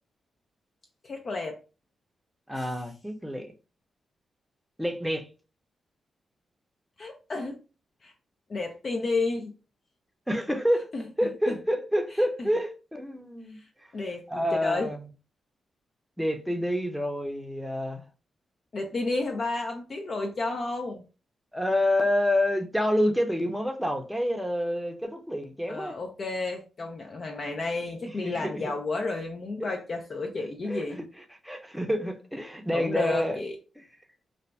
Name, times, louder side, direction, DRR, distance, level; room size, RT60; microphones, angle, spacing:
voice 1, 1.0-1.6 2.5-2.7 7.0-7.6 8.0-8.1 8.5-9.5 10.9-11.0 11.5-11.6 13.6-13.7 13.9-14.9 18.7-21.0 25.7-31.0 32.7-33.6, left 3 dB, 50° left, 0.5 m, -31 dB
voice 2, 2.5-3.5 4.8-5.3 10.3-10.9 11.2-13.9 14.3-15.1 16.2-18.0 21.5-26.0 28.0-28.7 29.6-29.7 30.4-31.0 31.3-33.4 33.8-33.9, equal, 5° right, 0.6 m, -28 dB
2.6 x 2.1 x 3.2 m
cardioid pair, 60°, 0 cm